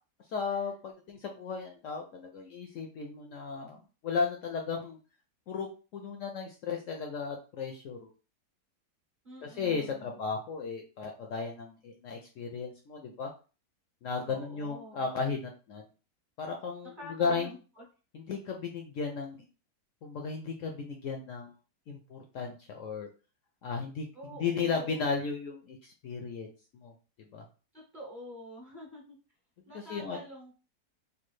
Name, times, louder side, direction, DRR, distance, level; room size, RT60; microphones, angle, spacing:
voice 1, 0.3-5.0 5.5-8.1 9.4-13.3 14.0-15.9 16.4-16.9 17.2-17.5 18.1-19.4 20.0-21.5 21.9-23.1 23.6-26.5 26.7-26.9 27.3-27.4 29.7-30.2, left 5 dB, 75° left, 2 dB, 0.7 m, -35 dB
voice 2, 9.2-10.2 14.3-15.1 16.9-17.8 24.1-25.1 27.7-29.2 29.7-30.7, left 1 dB, 45° right, -3 dB, 0.7 m, -47 dB
3.2 x 2.3 x 3.1 m, 0.34 s
omnidirectional pair, 1.8 m